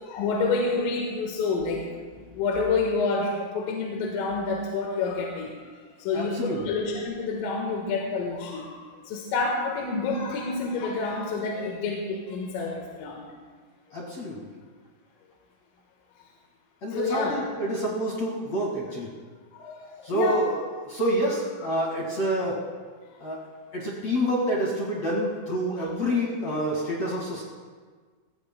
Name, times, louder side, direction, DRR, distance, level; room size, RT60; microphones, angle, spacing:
voice 1, 0.0-1.8 2.1-5.7 6.0-13.3 16.9-17.3 19.5-20.4, left 4 dB, 80° left, -1 dB, 4.0 m, -28 dB
voice 2, 6.1-6.6 13.9-14.5 16.8-19.1 20.0-22.6 23.2-23.4 23.7-27.4, equal, 50° left, -4 dB, 2.2 m, -28 dB
23.5 x 19.5 x 2.2 m, 1.5 s
omnidirectional pair, 5.8 m